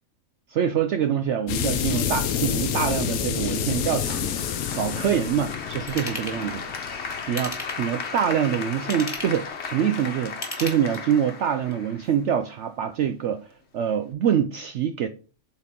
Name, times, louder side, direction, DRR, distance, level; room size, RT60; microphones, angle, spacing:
voice 1, 0.5-4.4 4.7-6.7 7.3-13.5 13.7-15.1, right 9 dB, 65° right, 0.7 m, -25 dB
sound 1, 1.5-8.0, left 9 dB, 75° left, 1.2 m, -28 dB
Applause, 3.4-12.5, left 5 dB, 50° left, 1.2 m, -36 dB
Ratchet pawl / Tools, 5.9-6.4 7.3-8.0 8.7-9.5 10.3-11.2 11.7-11.8, left 1 dB, 15° left, 1.7 m, -35 dB
8.0 x 4.2 x 3.7 m
omnidirectional pair, 1.6 m